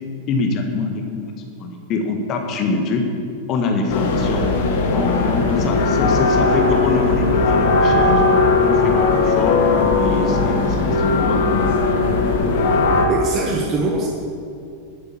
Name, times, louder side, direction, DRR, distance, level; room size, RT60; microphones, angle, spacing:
voice 1, 0.3-1.2 1.6-3.1 3.5-4.5 4.9-8.2 8.6-9.6 10.0-11.7, left 3 dB, 35° left, 3 dB, 1.6 m, -24 dB
sound 1, 3.9-13.1, left 3 dB, 55° left, 2.1 m, -18 dB
voice 2, 13.1-14.1, right 3 dB, 35° right, 0 dB, 1.6 m, -21 dB
11.5 x 9.5 x 8.5 m, 2.5 s
figure-of-eight pair, 90°, 0 cm